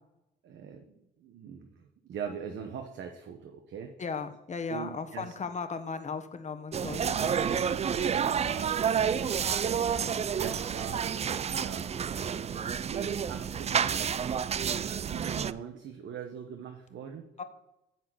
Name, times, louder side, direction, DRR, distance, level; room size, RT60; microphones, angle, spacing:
voice 1, 0.4-3.9 4.7-5.3 7.0-11.1 11.6-12.1 12.9-14.2 14.6-17.3, right 7 dB, 70° right, 5 dB, 1.1 m, -42 dB
voice 2, 4.0-7.1 17.4-17.5, left 5 dB, 35° left, 8 dB, 1.1 m, -36 dB
sound 1, 6.7-15.5, right 7 dB, 35° right, 0.4 m, -29 dB
10.5 x 4.2 x 7.7 m, 0.88 s
cardioid pair, 90°, 20 cm